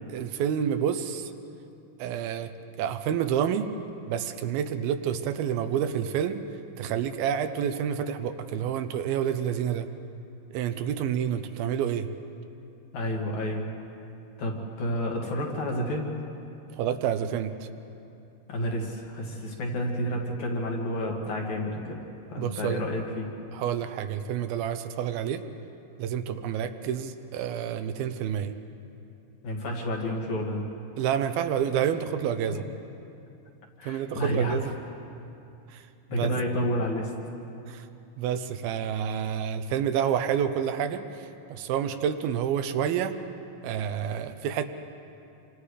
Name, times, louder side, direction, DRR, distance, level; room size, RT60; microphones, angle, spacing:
voice 1, 0.1-1.3 2.0-2.5 2.8-3.7 4.1-6.4 6.8-9.9 10.5-12.1 16.8-17.5 22.4-22.8 23.5-25.4 26.0-28.5 31.0-32.6 33.9-34.7 35.7-35.8 36.1-36.3 37.7-37.9 38.2-43.2 43.6-44.6, right 9 dB, 80° right, 9 dB, 2.7 m, -28 dB
voice 2, 12.9-13.7 14.4-16.1 18.5-22.0 22.3-23.3 29.4-30.7 32.5-32.6 33.8-34.6 36.1-37.1, equal, 55° left, -1 dB, 3.5 m, -30 dB
28.0 x 25.5 x 5.0 m, 2.7 s
omnidirectional pair, 4.3 m